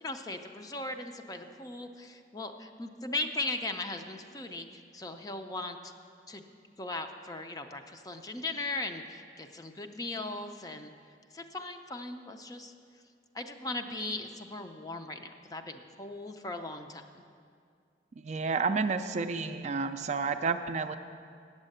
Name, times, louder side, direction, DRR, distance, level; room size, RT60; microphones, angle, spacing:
voice 1, 0.0-5.9 6.3-6.4 6.8-10.9 11.3-12.7 13.3-17.2, left 2 dB, 20° left, 6 dB, 0.5 m, -38 dB
voice 2, 18.2-21.0, right 4 dB, 40° right, 8 dB, 0.4 m, -30 dB
8.8 x 7.3 x 7.7 m, 2.3 s
head